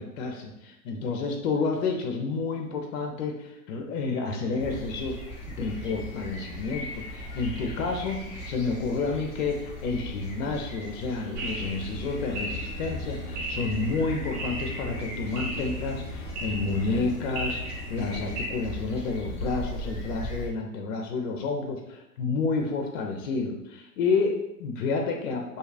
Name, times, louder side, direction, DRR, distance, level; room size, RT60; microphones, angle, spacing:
voice 1, 0.0-5.2 5.5-25.6, left 4 dB, 60° left, 2 dB, 0.5 m, -30 dB
sound 1, 4.6-20.5, equal, 15° left, 0.5 m, -39 dB
sound 2, 11.4-18.4, equal, 50° right, 1.2 m, -35 dB
2.7 x 2.2 x 2.4 m, 0.84 s
hypercardioid pair, 105°, 44 cm